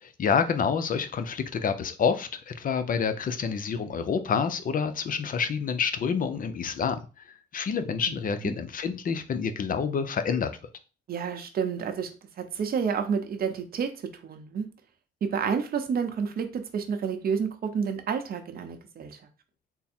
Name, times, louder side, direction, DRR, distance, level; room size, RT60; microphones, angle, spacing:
voice 1, 0.0-7.0 7.5-10.5, left 6 dB, 45° left, 0.5 m, -28 dB
voice 2, 11.1-12.1 12.4-13.9 14.2-14.7 15.2-19.2, right 6 dB, 50° right, 0.7 m, -29 dB
3.5 x 2.0 x 4.3 m
cardioid pair, 90°, 20 cm